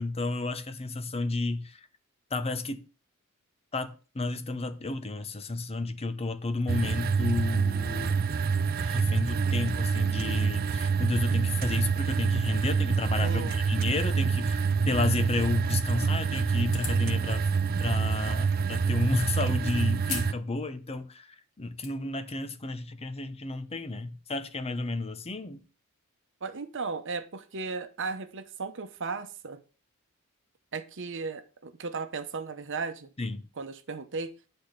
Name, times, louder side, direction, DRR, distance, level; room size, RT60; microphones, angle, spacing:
voice 1, 0.0-1.9 2.3-2.9 3.7-8.2 8.8-17.4 17.8-25.6 33.2-33.5, left 3 dB, 30° left, 0.7 m, -32 dB
sound 1, 6.7-20.3, right 5 dB, 45° right, 0.4 m, -27 dB
voice 2, 13.2-13.6 26.4-29.6 30.7-33.1 33.6-34.3, right 4 dB, 60° right, 0.9 m, -35 dB
sound 2, 16.7-17.1 18.1-18.2 20.0-20.4 20.8-20.9 21.5-21.9, left 6 dB, 70° left, 2.3 m, -37 dB
10.0 x 4.4 x 6.5 m
head